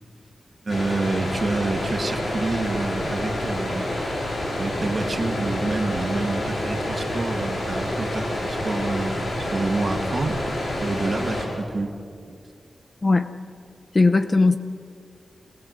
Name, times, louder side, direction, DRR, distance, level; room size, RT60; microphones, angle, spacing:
voice 1, 0.6-3.9 4.6-10.4 10.8-12.0 12.2-12.4, right 3 dB, 40° right, 4 dB, 1.7 m, -28 dB
sound 1, 0.7-11.5, left 1 dB, 70° left, 6.8 m, -28 dB
voice 2, 13.9-14.6, left 3 dB, 30° left, 8 dB, 0.8 m, -18 dB
26.0 x 18.5 x 7.9 m, 2.3 s
wide cardioid pair, 165°, 0 cm